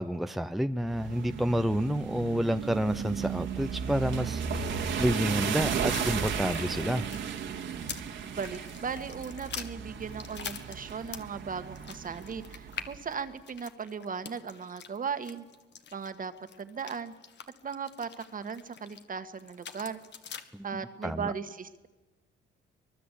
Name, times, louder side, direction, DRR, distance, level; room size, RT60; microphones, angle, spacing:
voice 1, 0.0-7.0 20.5-20.7 21.0-21.3, equal, ahead, 8 dB, 0.7 m, -29 dB
sound 1, 0.9-13.0, right 7 dB, 70° right, 2.2 m, -35 dB
sound 2, 5.9-8.1 8.4-11.4 11.7-19.0 19.4-20.4, left 7 dB, 60° left, 1.8 m, -44 dB
voice 2, 8.2-15.4 15.9-16.3 16.6-17.1 17.6-20.0 20.6-21.9, right 6 dB, 45° right, 9 dB, 1.8 m, -37 dB
24.0 x 21.0 x 8.5 m, 1.1 s
cardioid pair, 90°, 20 cm